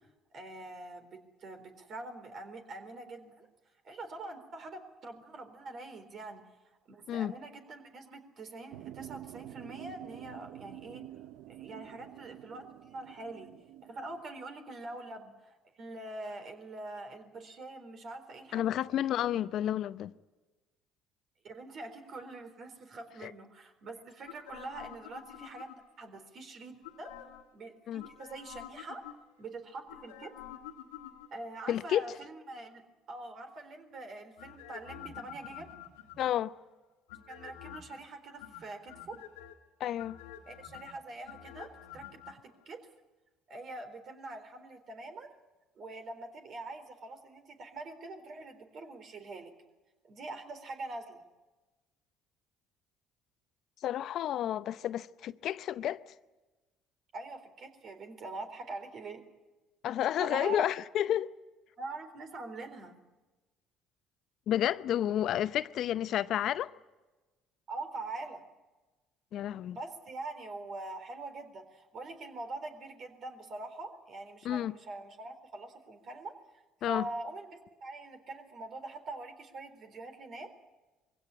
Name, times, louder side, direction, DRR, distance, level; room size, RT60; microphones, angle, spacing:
voice 1, 0.3-3.5 3.8-6.4 6.9-11.0 11.5-12.6 12.9-13.5 13.8-18.8 21.4-25.7 26.0-27.1 27.5-29.0 29.4-30.3 31.3-32.8 33.1-35.7 37.3-39.2 40.5-42.4 42.7-42.8 43.5-45.3 45.8-49.5 50.0-51.2 57.1-59.2 60.2-60.6 61.8-63.0 67.7-68.4 69.7-80.5, right 2 dB, 55° right, 3.9 m, -44 dB
sound 1, 8.7-14.2, right 13 dB, 70° right, 0.6 m, -48 dB
voice 2, 18.5-20.1 23.2-23.3 27.9-28.0 31.7-32.1 36.2-36.5 39.8-40.2 53.8-56.1 59.8-61.3 64.5-66.7 69.3-69.8 74.4-74.7 76.8-77.1, left 11 dB, 60° left, 0.7 m, -31 dB
sound 2, 24.2-26.1 26.8-27.5 28.0-29.4 29.9-31.6 34.4-36.5 37.1-38.0 38.4-39.5 40.0-42.3 42.6-42.7, left 11 dB, 85° left, 1.8 m, -49 dB
22.5 x 16.5 x 9.8 m
hypercardioid pair, 60°, 0 cm